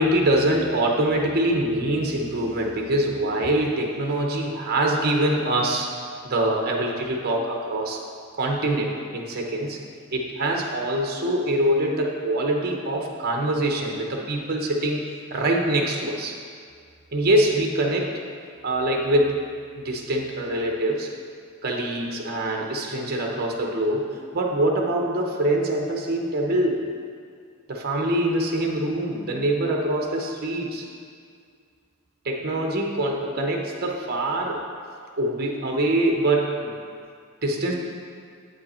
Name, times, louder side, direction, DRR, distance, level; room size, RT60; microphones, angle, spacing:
voice 1, 0.0-5.9 6.2-8.0 8.4-9.8 10.1-15.0 15.3-16.3 17.1-18.2 18.6-19.4 19.7-21.1 21.6-24.0 24.3-26.8 27.7-30.8 32.2-34.6 35.2-36.7 37.4-37.7, right 1 dB, 45° right, 1 dB, 0.8 m, -24 dB
8.1 x 5.2 x 4.2 m, 2.1 s
head